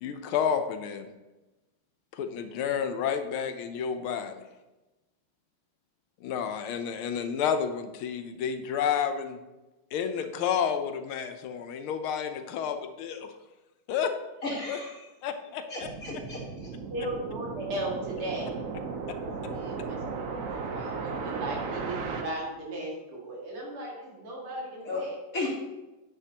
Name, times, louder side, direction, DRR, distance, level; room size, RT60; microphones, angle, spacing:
voice 1, 0.0-1.1 2.1-4.4 6.2-9.4 9.9-13.3 13.9-14.1 14.7-14.8 15.2-15.9 19.1-19.2, left 7 dB, 80° left, 8 dB, 1.5 m, -30 dB
voice 2, 14.4-15.1 15.7-16.7 24.8-25.0 25.3-25.5, left 3 dB, 40° left, -6 dB, 3.0 m, -34 dB
sound 1, 15.8-22.2, right 4 dB, 70° right, 0.7 m, -35 dB
voice 3, 16.9-18.5 19.5-25.2, right 1 dB, 85° right, -2 dB, 3.0 m, -37 dB
9.4 x 8.9 x 2.8 m, 1.1 s
omnidirectional pair, 2.3 m